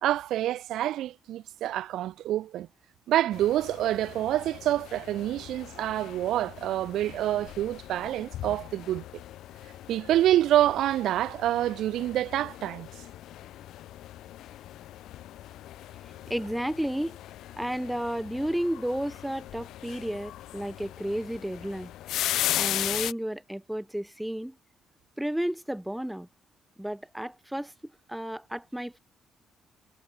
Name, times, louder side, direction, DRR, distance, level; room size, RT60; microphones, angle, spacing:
voice 1, 0.0-2.7 3.1-9.2 9.9-12.9, right 13 dB, 80° right, 2.6 m, -27 dB
sound 1, 3.3-23.1, left 13 dB, 85° left, 1.0 m, -38 dB
voice 2, 16.3-17.2 17.6-21.9 22.6-24.5 25.2-26.3 26.8-27.7 28.1-29.0, equal, 5° right, 4.7 m, -32 dB
cardioid pair, 90°, 0 cm